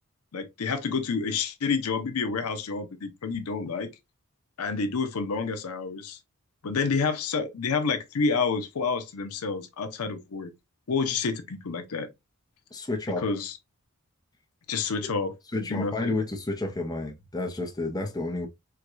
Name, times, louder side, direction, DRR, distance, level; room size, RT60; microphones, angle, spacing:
voice 1, 0.3-3.9 4.6-6.2 6.6-10.5 10.9-12.1 13.1-13.6 14.7-16.1, left 4 dB, 90° left, 0.6 m, -29 dB
voice 2, 12.7-13.2 15.0-15.1 15.5-18.5, left 2 dB, 15° left, 0.6 m, -30 dB
4.5 x 2.2 x 2.4 m
head